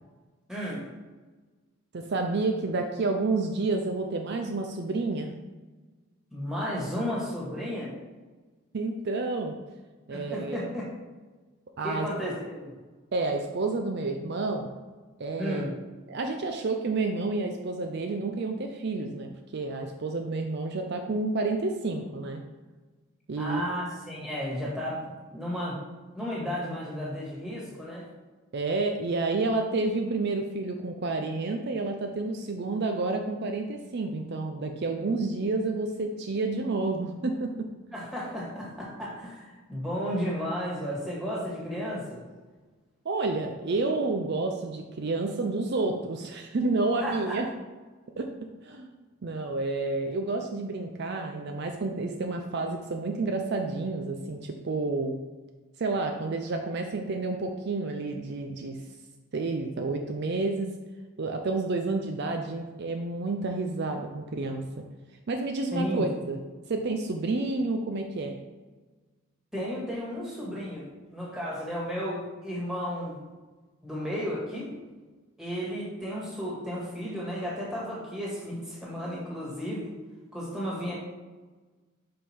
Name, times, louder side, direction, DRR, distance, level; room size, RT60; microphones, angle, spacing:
voice 1, 0.5-0.9 6.3-7.9 10.1-10.9 11.8-12.7 15.4-15.8 23.4-25.0 25.3-25.8 26.1-28.1 37.9-42.3 47.0-47.4 65.7-66.0 69.5-73.2 73.8-74.8 75.4-79.9 80.3-80.9, equal, 5° right, -6 dB, 1.8 m, -33 dB
voice 2, 1.9-5.3 8.7-9.6 10.1-10.7 11.8-12.1 13.1-14.7 15.2-15.6 16.1-22.4 23.3-23.6 28.5-37.7 43.0-47.5 48.2-48.3 48.6-48.9 49.2-55.1 55.8-58.8 59.3-60.7 61.2-64.6 65.3-66.4 66.7-68.4, right 3 dB, 50° right, 4 dB, 0.5 m, -30 dB
5.4 x 5.1 x 4.4 m, 1.3 s
head